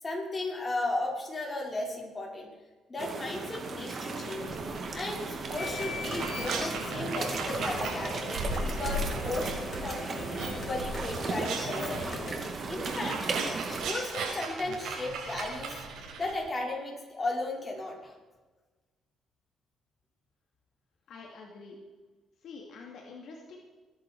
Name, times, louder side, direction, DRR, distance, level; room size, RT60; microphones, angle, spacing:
voice 1, 0.0-2.5 2.9-4.5 4.9-13.2 13.7-15.8 16.2-18.1, left 2 dB, 30° left, -2 dB, 5.5 m, -35 dB
sound 1, 3.0-13.9, right 4 dB, 45° right, 2.6 m, -36 dB
sound 2, 4.4-9.8 10.1-16.4, right 3 dB, 80° right, 5.0 m, -37 dB
sound 3, 5.6-12.4, left 3 dB, 45° left, 4.7 m, -40 dB
voice 2, 21.1-21.8 22.4-23.6, left 4 dB, 70° left, 0 dB, 2.5 m, -46 dB
22.5 x 10.0 x 4.8 m, 1.3 s
cardioid pair, 90°, 0 cm